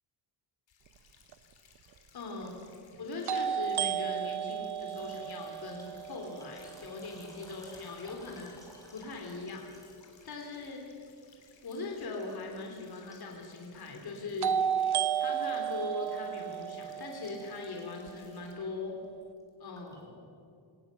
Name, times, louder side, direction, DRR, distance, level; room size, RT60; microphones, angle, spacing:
sound 1, 0.7-18.5, left 6 dB, 70° left, 3.3 m, -63 dB
sound 2, 1.3-1.4 3.3-7.2 14.4-18.4, right 9 dB, 55° right, 0.8 m, -33 dB
voice 1, 2.1-2.5 3.0-8.6 8.9-9.7 10.2-10.8 11.6-14.6 15.2-19.0 19.6-20.3, left 3 dB, 50° left, 1 dB, 3.2 m, -40 dB
sound 3, 4.8-11.3 11.6-12.4 12.7-15.0 15.3-16.6 16.9-17.0 17.2-18.1 18.4-18.6 19.0-20.0, left 1 dB, 5° left, 4.4 m, -57 dB
23.0 x 18.5 x 7.5 m, 2.4 s
wide cardioid pair, 165°, 47 cm